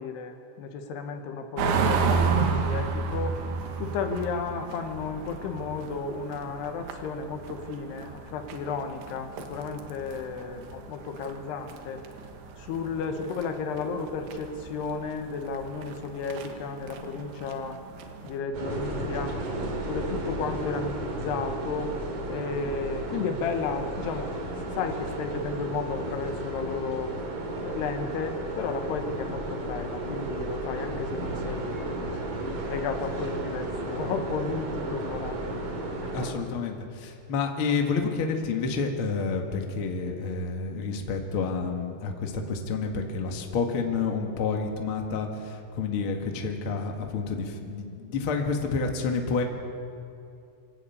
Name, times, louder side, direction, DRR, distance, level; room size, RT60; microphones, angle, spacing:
voice 1, 0.0-3.4 3.8-12.0 12.7-17.8 18.2-19.3 19.9-21.9 22.3-24.3 24.7-27.1 27.6-32.2 32.7-35.7 36.0-36.5, left 5 dB, 80° left, 6 dB, 3.3 m, -33 dB
sound 1, 1.6-18.4, right 5 dB, 75° right, 3.4 m, -33 dB
sound 2, 18.5-36.3, right 1 dB, 60° right, 4.0 m, -33 dB
voice 2, 36.1-49.4, left 4 dB, 45° left, 3 dB, 1.8 m, -29 dB
26.5 x 11.5 x 8.5 m, 2.7 s
omnidirectional pair, 4.7 m